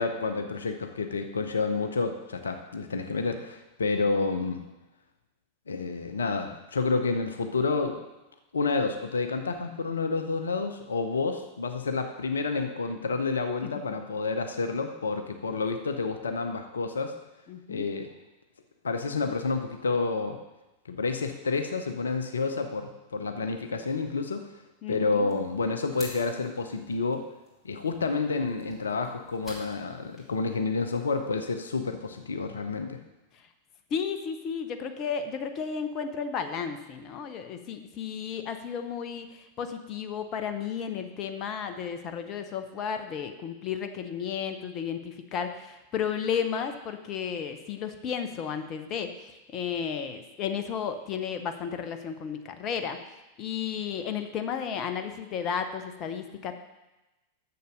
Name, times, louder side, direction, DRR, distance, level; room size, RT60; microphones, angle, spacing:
voice 1, 0.0-4.6 5.7-8.0 8.5-17.2 17.7-18.1 18.8-20.4 20.9-24.5 24.9-27.3 27.6-33.0, left 4 dB, 70° left, 7 dB, 0.6 m, -29 dB
voice 2, 17.5-17.9 24.8-25.3 33.9-39.3 39.6-49.1 49.5-53.0 53.4-56.5, left 7 dB, 35° left, 8 dB, 0.8 m, -33 dB
sound 1, 25.2-31.7, equal, 5° left, 3.0 m, -51 dB
6.9 x 6.7 x 6.4 m, 1.0 s
figure-of-eight pair, 90°, 0 cm